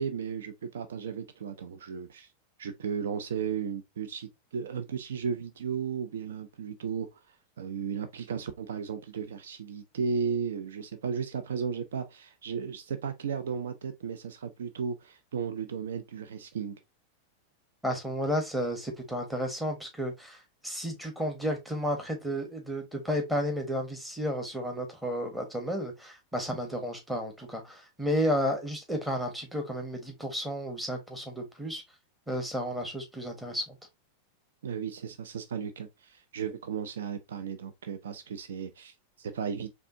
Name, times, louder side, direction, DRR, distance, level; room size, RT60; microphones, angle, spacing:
voice 1, 0.0-2.3 2.6-16.8 34.6-39.7, right 6 dB, 60° right, 0.5 m, -35 dB
voice 2, 17.8-31.8 32.3-33.8, equal, 5° right, 1.4 m, -32 dB
4.2 x 3.4 x 2.7 m
figure-of-eight pair, 90°, 0 cm